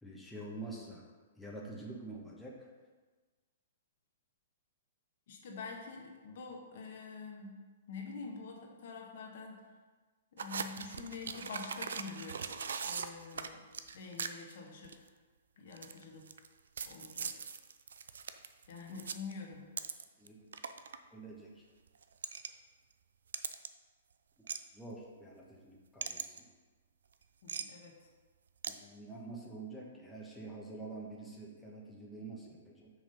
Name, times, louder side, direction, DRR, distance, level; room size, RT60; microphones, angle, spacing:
voice 1, 0.0-1.0 1.4-2.6 18.9-19.0 20.2-20.5 21.1-21.5 24.7-26.5 28.7-32.9, right 2 dB, 5° left, -4 dB, 1.3 m, -47 dB
voice 2, 5.3-7.6 7.9-9.6 10.3-12.4 12.8-13.6 13.9-14.9 15.6-16.2 16.8-17.3 18.7-19.7 27.4-28.0, left 5 dB, 60° left, 0 dB, 1.4 m, -46 dB
sound 1, 10.4-14.6 14.8-15.1 15.7-16.5 16.8-20.3 20.5-21.0 22.0-22.5 23.3-23.7 24.5-24.6 26.0-26.4 27.5-27.6 28.6-28.7, right 6 dB, 75° right, 0.4 m, -40 dB
5.9 x 4.9 x 5.4 m, 1.4 s
hypercardioid pair, 120°, 0 cm